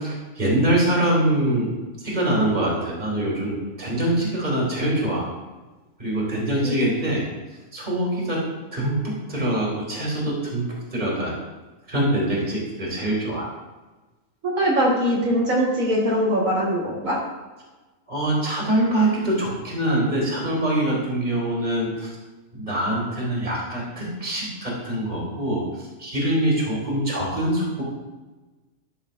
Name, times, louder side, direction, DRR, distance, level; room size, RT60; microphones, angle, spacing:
voice 1, 0.0-1.7 2.0-5.3 6.0-7.3 7.7-8.4 8.7-11.3 11.9-13.5 18.1-22.1 22.5-25.6 26.0-27.8, right 1 dB, 30° right, -3 dB, 2.2 m, -24 dB
voice 2, 14.4-17.2, equal, 75° right, -4 dB, 1.9 m, -22 dB
12.0 x 6.3 x 2.5 m, 1.2 s
omnidirectional pair, 1.4 m